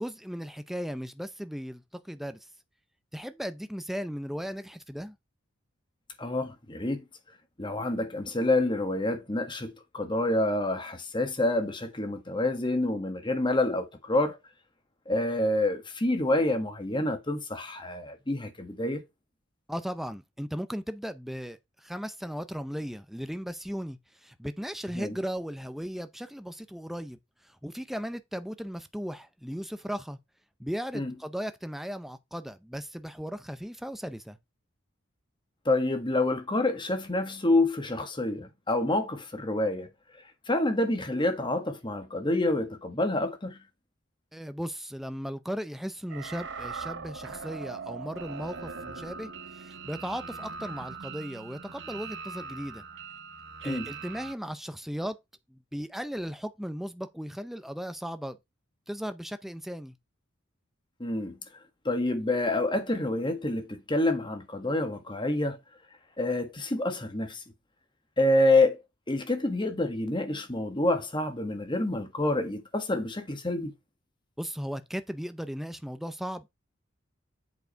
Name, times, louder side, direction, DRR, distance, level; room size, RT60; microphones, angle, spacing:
voice 1, 0.0-2.4 3.1-5.2 19.7-27.2 27.4-30.2 30.6-34.4 44.3-52.8 53.6-55.2 55.5-58.4 58.9-59.9 74.4-76.5, equal, ahead, 0.5 m, -36 dB
voice 2, 6.2-7.0 7.6-14.4 15.1-19.0 24.9-25.1 30.9-31.1 35.6-39.9 40.5-43.6 53.6-53.9 61.0-61.4 61.8-65.6 66.2-67.4 68.2-68.8 69.1-73.7, left 2 dB, 25° left, 1.5 m, -27 dB
sound 1, 46.1-54.3, right 5 dB, 60° right, 0.9 m, -41 dB
8.0 x 4.8 x 4.5 m
head